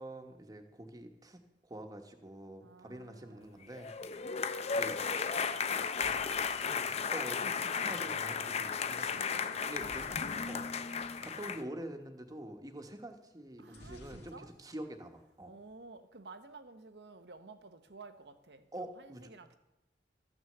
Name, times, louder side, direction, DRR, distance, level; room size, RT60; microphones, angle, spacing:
voice 1, 0.0-3.9 4.3-5.2 7.1-10.1 10.5-10.7 11.0-15.5 18.7-19.3, right 1 dB, 20° right, 6 dB, 1.2 m, -46 dB
voice 2, 2.6-3.7 4.0-4.3 9.1-10.7 13.6-14.5 15.4-19.6, right 3 dB, 70° right, 9 dB, 1.0 m, -53 dB
sound 1, 3.7-11.6, left 6 dB, 40° left, 0.5 m, -34 dB
sound 2, 5.9-7.8 9.7-10.9 11.2-11.3 11.5-11.8 13.7-14.9 15.2-15.8, left 1 dB, 70° left, 2.0 m, -55 dB
13.0 x 6.3 x 7.8 m, 0.98 s
head